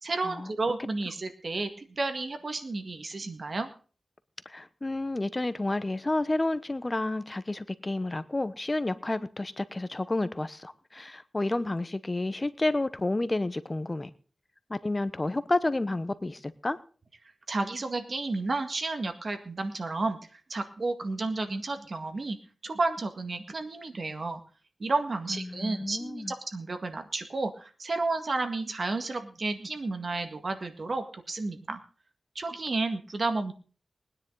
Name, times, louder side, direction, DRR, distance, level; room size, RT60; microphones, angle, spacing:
voice 1, 0.0-3.7 17.5-22.4 22.6-24.4 24.8-31.8 32.4-33.5, right 3 dB, 55° right, 7 dB, 1.9 m, -32 dB
voice 2, 4.4-14.1 14.7-16.8 25.3-26.3, left 2 dB, 30° left, 14 dB, 0.9 m, -30 dB
20.5 x 10.0 x 4.0 m, 0.38 s
wide cardioid pair, 75°, 0 cm